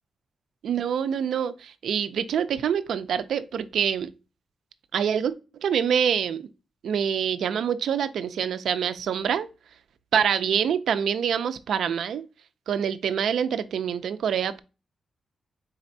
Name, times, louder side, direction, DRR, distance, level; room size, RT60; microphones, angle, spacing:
voice 1, 0.6-4.1 4.9-5.3 5.6-6.5 6.8-9.5 10.1-12.2 12.7-14.6, right 8 dB, 85° right, 0.4 m, -25 dB
4.3 x 3.9 x 2.6 m
cardioid pair, 105°, 0 cm